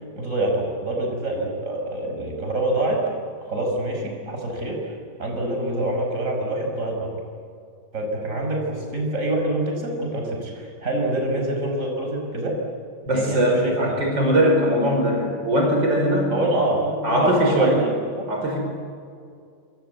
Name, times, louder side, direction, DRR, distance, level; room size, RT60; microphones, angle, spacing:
voice 1, 0.0-3.0 3.4-4.9 5.2-7.1 7.9-12.6 13.1-13.9 16.3-18.3, right 1 dB, 40° right, 1 dB, 5.8 m, -26 dB
voice 2, 13.1-16.3 17.0-17.8 18.3-18.6, equal, 65° right, 1 dB, 5.8 m, -20 dB
28.0 x 25.5 x 8.1 m, 2.3 s
omnidirectional pair, 2.2 m